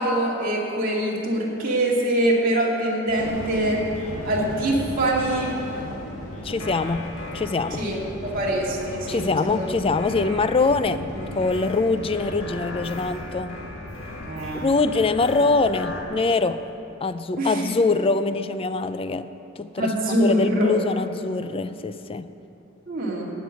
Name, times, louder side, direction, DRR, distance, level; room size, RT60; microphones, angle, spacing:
voice 1, 0.0-3.9 4.2-5.5 7.7-8.0 8.2-9.7 14.2-14.6 17.4-17.7 19.8-20.7 22.9-23.3, right 1 dB, 45° right, -4 dB, 2.3 m, -24 dB
sound 1, 3.1-16.0, left 1 dB, 90° left, 2.1 m, -35 dB
voice 2, 6.4-7.9 9.1-13.6 14.5-16.6 17.0-19.9 20.2-22.3, left 3 dB, 25° left, 12 dB, 0.4 m, -24 dB
16.0 x 5.3 x 9.2 m, 2.9 s
head